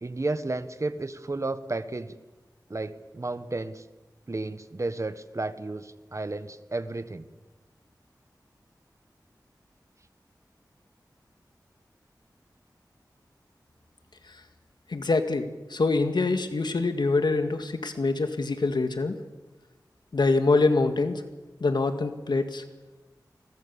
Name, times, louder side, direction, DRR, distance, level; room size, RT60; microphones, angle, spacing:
voice 1, 0.0-2.1 2.7-3.8 4.3-7.2, right 2 dB, 45° right, 12 dB, 1.5 m, -32 dB
voice 2, 14.9-19.2 20.1-21.2 21.6-22.6, left 3 dB, 80° left, 8 dB, 2.0 m, -25 dB
29.0 x 21.5 x 7.1 m, 1.1 s
wide cardioid pair, 75°, 7 cm